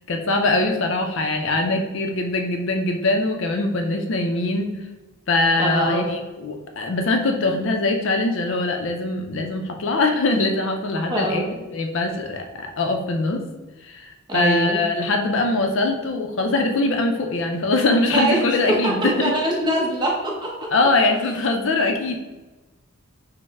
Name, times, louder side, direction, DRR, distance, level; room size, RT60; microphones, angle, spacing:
voice 1, 0.1-4.7 5.3-11.4 11.7-13.4 13.8-19.3 20.7-22.2, left 2 dB, 60° left, 4 dB, 0.5 m, -22 dB
voice 2, 5.6-6.1 11.1-11.5 14.3-14.8 18.1-18.4 18.7-20.7, right 1 dB, 20° right, -2 dB, 0.8 m, -23 dB
5.3 x 2.1 x 3.4 m, 1.1 s
head